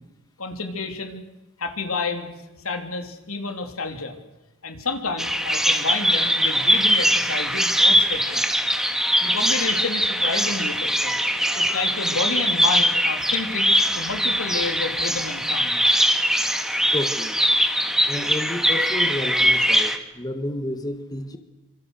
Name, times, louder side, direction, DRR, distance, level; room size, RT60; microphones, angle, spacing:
voice 1, 0.4-1.3 1.6-2.3 2.6-4.2 4.6-8.5 9.2-11.2 11.5-15.8, left 3 dB, 75° left, 6 dB, 3.5 m, -30 dB
Bird vocalization bird call bird song, 5.2-20.0, equal, ahead, 1.8 m, -21 dB
voice 2, 16.9-17.4 18.1-21.4, left 1 dB, 20° left, 8 dB, 1.6 m, -30 dB
27.0 x 26.0 x 6.6 m, 0.98 s
head